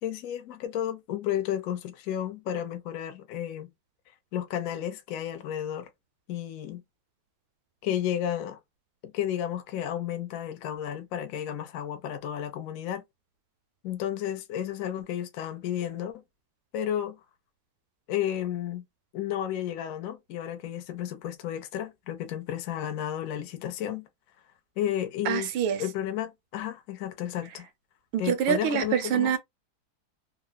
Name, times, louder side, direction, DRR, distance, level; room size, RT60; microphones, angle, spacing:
voice 1, 0.0-3.7 4.3-5.9 6.3-6.8 7.8-8.6 9.1-13.0 13.8-16.2 16.7-17.2 18.1-18.8 19.1-24.1 24.8-25.5 25.8-27.7 28.2-29.3, left 10 dB, 85° left, 0.7 m, -32 dB
voice 2, 25.2-25.8 28.1-29.4, right 8 dB, 80° right, 1.4 m, -25 dB
3.6 x 2.0 x 2.2 m
omnidirectional pair, 2.2 m